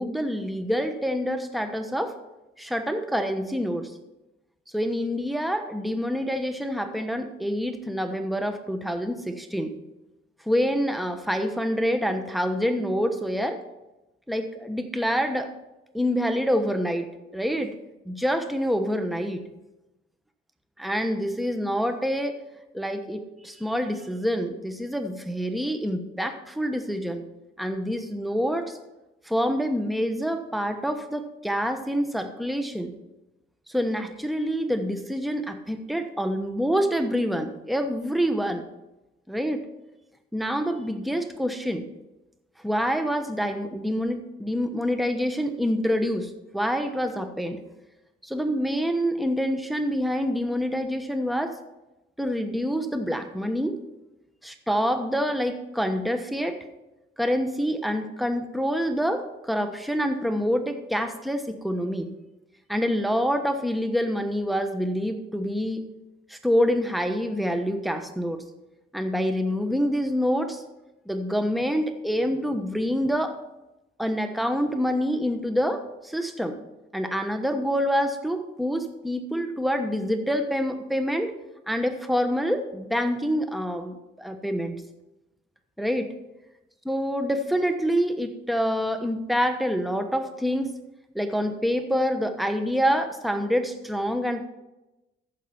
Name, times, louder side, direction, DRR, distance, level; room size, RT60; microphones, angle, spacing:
voice 1, 0.0-2.2 2.6-3.9 4.7-9.7 10.5-13.6 14.3-15.5 15.9-17.8 18.0-19.4 20.8-22.4 22.7-27.2 27.6-28.8 29.2-32.9 33.7-38.7 39.3-39.6 40.3-41.9 42.6-47.6 48.2-51.6 52.2-53.8 54.4-56.6 57.2-62.1 62.7-65.8 66.3-68.4 68.9-70.6 71.1-73.4 74.0-76.6 76.9-81.3 81.7-84.8 85.8-86.1 86.9-90.8 91.1-94.4, equal, ahead, 7 dB, 1.1 m, -26 dB
14.0 x 5.7 x 5.5 m, 0.99 s
cardioid pair, 90°, 20 cm